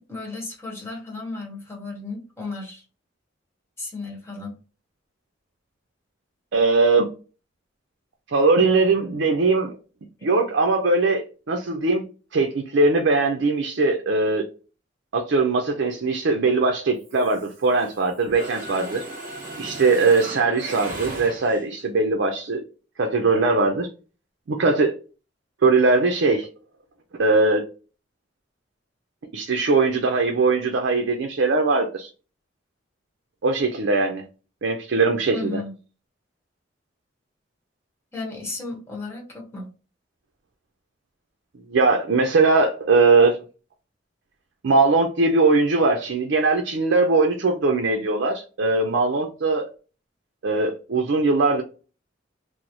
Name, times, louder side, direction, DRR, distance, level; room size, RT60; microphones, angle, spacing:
voice 1, 0.0-2.8 3.8-4.6 35.3-35.7 38.1-39.7, left 3 dB, 15° left, 1.1 m, -34 dB
voice 2, 6.5-7.1 8.3-9.7 10.2-12.0 12.3-14.4 15.1-19.0 19.6-22.6 23.0-23.9 24.5-25.0 25.6-26.5 27.2-27.7 29.3-32.1 33.4-34.2 34.6-35.6 41.7-43.4 44.6-49.7 50.4-51.6, right 3 dB, 65° right, 0.5 m, -20 dB
Mechanisms, 17.0-18.0 18.3-21.8, right 2 dB, 45° right, 1.1 m, -36 dB
3.0 x 2.0 x 3.9 m
head